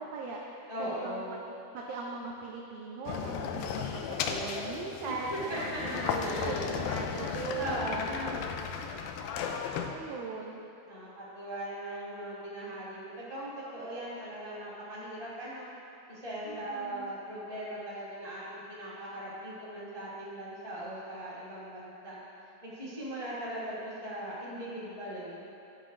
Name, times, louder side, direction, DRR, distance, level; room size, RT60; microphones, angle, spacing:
voice 1, 0.0-1.2 1.7-8.4 9.9-10.6 16.4-17.1, right 4 dB, 90° right, -1 dB, 1.7 m, -40 dB
voice 2, 0.7-1.4 5.3-6.8 7.1-8.4 10.8-15.7 16.1-22.2 22.6-25.5, right 1 dB, 20° left, -9 dB, 0.9 m, -39 dB
sound 1, 3.1-9.9, left 7 dB, 80° left, 2.3 m, -35 dB
14.0 x 9.6 x 2.6 m, 2.7 s
omnidirectional pair, 4.4 m